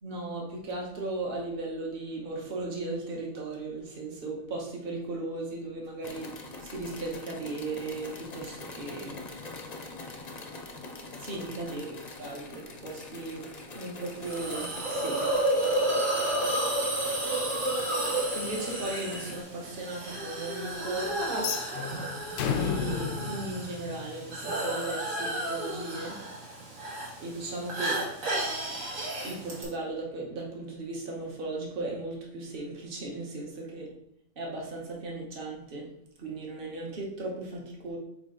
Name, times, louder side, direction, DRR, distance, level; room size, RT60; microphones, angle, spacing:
voice 1, 0.0-6.3 6.6-9.2 11.2-11.9 12.2-13.5 13.7-15.4 18.1-21.4 22.4-26.2 27.2-28.0 29.2-33.9 34.4-35.9 36.2-38.0, right 2 dB, 40° right, -2 dB, 1.5 m, -37 dB
sound 1, 6.0-19.4, left 2 dB, 40° left, 0.7 m, -44 dB
Hiss, 14.2-29.6, right 1 dB, 70° right, 2.1 m, -31 dB
sound 2, 21.3-24.4, left 8 dB, 70° left, 0.9 m, -33 dB
8.8 x 3.2 x 3.9 m, 0.76 s
omnidirectional pair, 1.4 m